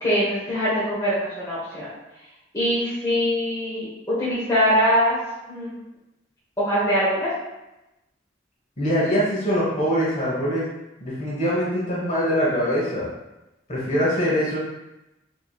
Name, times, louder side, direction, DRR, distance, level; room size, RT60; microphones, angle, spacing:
voice 1, 0.0-1.9 2.5-5.2 5.5-5.7 6.6-7.3, equal, 20° left, -10 dB, 1.1 m, -22 dB
voice 2, 8.8-10.7 11.0-13.1 13.7-14.6, equal, 40° left, -7 dB, 1.3 m, -23 dB
4.7 x 2.9 x 2.3 m, 0.96 s
head